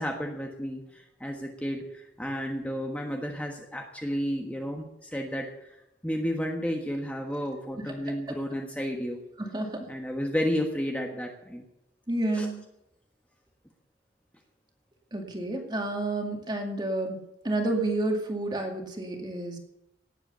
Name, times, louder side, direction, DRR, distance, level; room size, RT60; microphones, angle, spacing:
voice 1, 0.0-5.8 6.0-9.2 9.9-11.6 12.3-12.5, equal, 10° left, 2 dB, 1.3 m, -32 dB
voice 2, 9.4-9.9 12.1-12.6 15.1-17.2 17.4-19.6, right 2 dB, 25° right, 3 dB, 2.2 m, -30 dB
18.0 x 8.0 x 6.8 m, 0.88 s
head